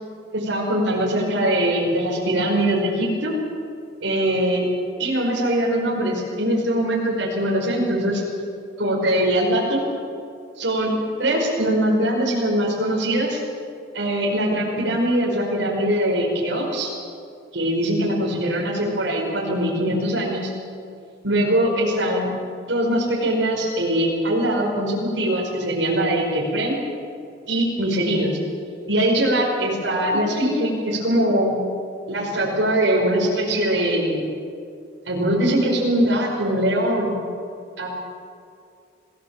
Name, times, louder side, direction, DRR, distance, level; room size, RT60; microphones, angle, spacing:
voice 1, 0.3-3.3 4.0-4.7 5.0-8.2 8.8-9.8 10.6-13.4 13.9-16.9 17.5-20.5 21.2-22.3 22.7-26.8 27.5-28.3 28.9-31.6 32.1-34.2 35.1-37.1 37.8-37.9, right 1 dB, 90° right, -3 dB, 5.4 m, -22 dB
28.0 x 18.0 x 7.6 m, 2.4 s
head